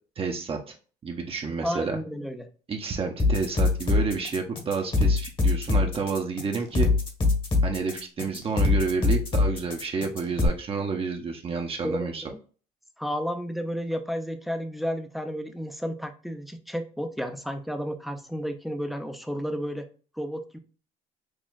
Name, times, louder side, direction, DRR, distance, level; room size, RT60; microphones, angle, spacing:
voice 1, 0.2-0.7 1.0-2.0 2.7-6.9 7.6-12.2, right 5 dB, 35° right, 2 dB, 0.7 m, -30 dB
voice 2, 1.6-2.5 11.8-12.4 13.0-19.8 20.1-20.6, equal, ahead, 7 dB, 0.6 m, -32 dB
sound 1, 3.2-10.5, left 3 dB, 30° left, 1.2 m, -23 dB
6.2 x 2.4 x 2.3 m, 0.38 s
cardioid pair, 110°, 17 cm